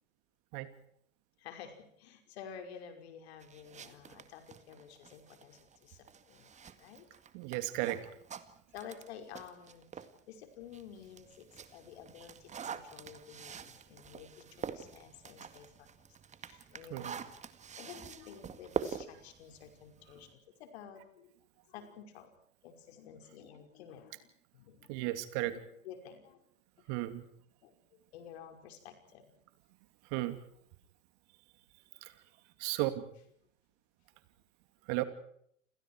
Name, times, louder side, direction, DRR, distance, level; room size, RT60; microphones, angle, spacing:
voice 1, 1.4-7.1 8.7-15.9 16.5-17.1 17.8-20.3 20.6-21.3 21.7-22.3 22.6-25.0 25.8-26.5 27.6-29.3, left 8 dB, 55° left, 6 dB, 5.6 m, -51 dB
sound 1, 3.4-10.2 10.6-20.3, right 7 dB, 20° right, 1.9 m, -45 dB
voice 2, 7.3-8.0 16.9-17.2 24.9-25.6 26.9-27.3 30.1-30.4 32.0-32.1 32.6-33.0 34.9-35.0, right 16 dB, 45° right, 10 dB, 2.8 m, -34 dB
29.5 x 28.0 x 4.8 m, 0.68 s
figure-of-eight pair, 95°, 37 cm